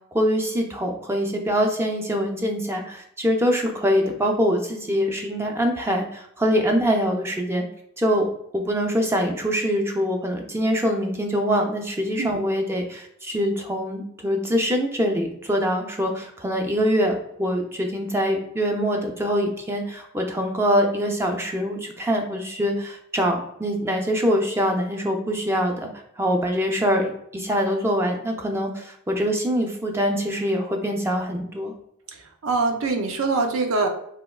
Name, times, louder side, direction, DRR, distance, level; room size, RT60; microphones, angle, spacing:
voice 1, 0.1-7.6 8.0-8.3 8.5-25.9 26.2-31.7, equal, 10° right, 2 dB, 0.4 m, -24 dB
voice 2, 32.1-33.9, right 3 dB, 75° right, 5 dB, 0.5 m, -24 dB
3.4 x 2.8 x 2.3 m, 0.74 s
head